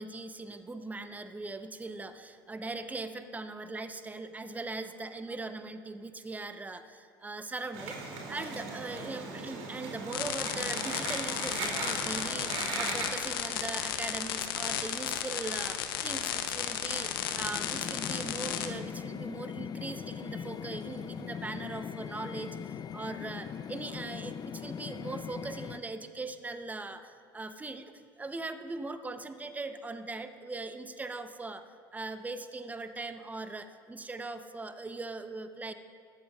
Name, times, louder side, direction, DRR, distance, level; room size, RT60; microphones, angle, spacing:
voice 1, 0.0-27.9 28.2-31.6 31.9-35.7, right 3 dB, 15° right, 9 dB, 0.8 m, -40 dB
sound 1, 7.7-13.1, right 3 dB, 65° right, 2.7 m, -38 dB
sound 2, 10.1-18.7, left 10 dB, 80° left, 0.8 m, -34 dB
sound 3, 16.8-25.8, left 7 dB, 35° left, 0.6 m, -40 dB
20.0 x 14.5 x 2.4 m, 2.2 s
hypercardioid pair, 75°, 12 cm